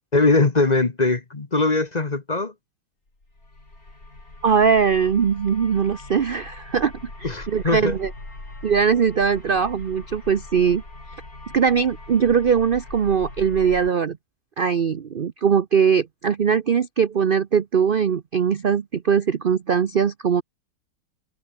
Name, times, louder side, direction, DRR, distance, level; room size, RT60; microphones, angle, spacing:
voice 1, 0.1-2.5 7.2-7.9, left 3 dB, 25° left, 1.2 m, -21 dB
sound 1, 3.2-13.9, left 2 dB, 50° left, 6.9 m, -41 dB
voice 2, 4.4-6.9 7.2-8.1 8.6-10.8 11.5-14.2 14.6-20.4, right 6 dB, 55° right, 0.6 m, -21 dB
open air
omnidirectional pair, 1.9 m